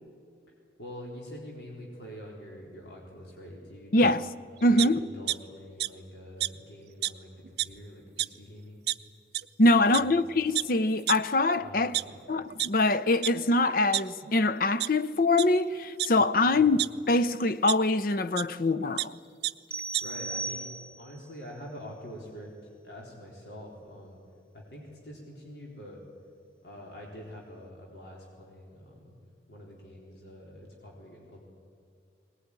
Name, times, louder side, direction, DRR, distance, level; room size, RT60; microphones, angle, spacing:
voice 1, 0.8-4.2 4.6-8.8 9.9-10.2 11.6-12.2 16.4-16.8 20.0-20.7 21.0-24.2 24.5-26.0 26.6-29.2 29.5-31.4, equal, 70° left, 3.9 m, -45 dB
voice 2, 3.9-4.2 4.6-5.0 9.6-11.9 12.3-16.8 17.1-19.2, left 2 dB, 50° left, 0.7 m, -24 dB
sound 1, 4.8-5.4 5.8-5.9 6.4-6.5 7.0-7.1 7.4-7.8 8.2-8.3 8.9-9.0 9.3-9.5 9.9-10.0 10.5-10.6 11.1-11.2 11.7-12.7 13.2-13.3 13.7-14.4 14.8-14.9 15.3-15.5 16.0-16.9 17.7-17.8 18.4-18.5 18.7-19.1 19.4-19.5 19.8-20.0, right 15 dB, 65° right, 0.5 m, -29 dB
sound 2, 19.7-21.2, right 3 dB, 5° left, 1.8 m, -36 dB
20.5 x 19.5 x 9.8 m
head